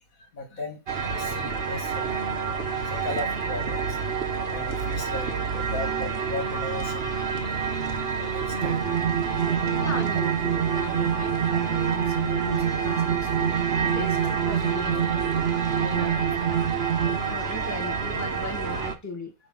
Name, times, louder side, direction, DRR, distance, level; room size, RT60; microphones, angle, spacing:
voice 1, 0.2-0.8 1.1-2.2 2.8-4.0 4.5-7.1 8.2-8.8 9.3-9.7 17.1-17.3, left 2 dB, 75° left, 2.5 m, -37 dB
sound 1, 0.9-19.0, right 5 dB, 45° right, 1.2 m, -29 dB
sound 2, 8.6-17.2, right 9 dB, 65° right, 0.8 m, -26 dB
voice 2, 9.8-15.5 15.8-16.7 17.3-19.3, left 2 dB, 10° left, 2.1 m, -37 dB
9.4 x 3.3 x 5.7 m
omnidirectional pair, 1.5 m